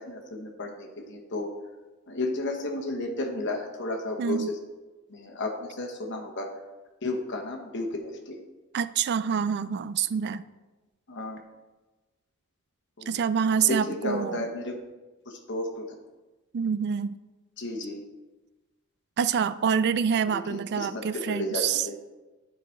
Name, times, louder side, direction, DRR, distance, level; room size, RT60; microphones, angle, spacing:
voice 1, 0.0-1.5 2.1-4.5 5.1-6.5 7.0-8.4 11.1-11.4 13.0-13.2 13.7-14.7 15.3-15.9 17.6-18.0 20.3-21.9, left 2 dB, 50° left, 2 dB, 1.2 m, -33 dB
voice 2, 4.2-4.5 8.7-10.4 13.1-14.5 16.5-17.2 19.2-21.9, right 7 dB, 50° right, 15 dB, 0.3 m, -26 dB
9.9 x 4.9 x 4.5 m, 1.2 s
head